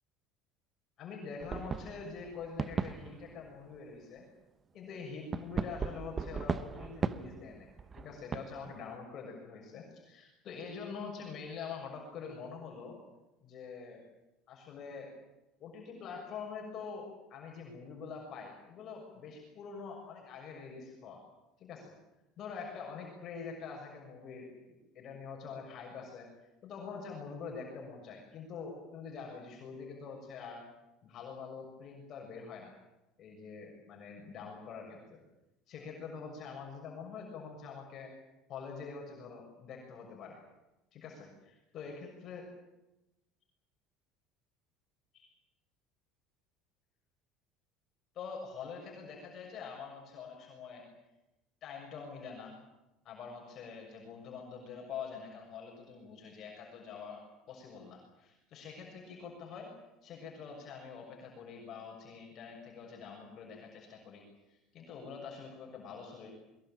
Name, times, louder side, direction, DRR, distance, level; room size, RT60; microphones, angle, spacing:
voice 1, 1.0-4.2 4.7-7.7 8.0-13.0 13.4-14.0 14.5-15.1 15.6-21.2 21.6-21.9 22.4-26.3 26.6-30.6 31.0-32.7 33.2-35.2 35.7-38.1 38.5-40.4 40.9-42.5 45.1-45.3 48.1-50.8 51.6-52.5 53.0-59.7 60.0-64.2 64.5-66.3, left 5 dB, 45° left, 0 dB, 6.7 m, -45 dB
sound 1, 1.4-3.8 5.3-8.8, right 5 dB, 25° right, 0.9 m, -37 dB
22.5 x 22.0 x 9.1 m, 0.97 s
cardioid pair, 135°, 0 cm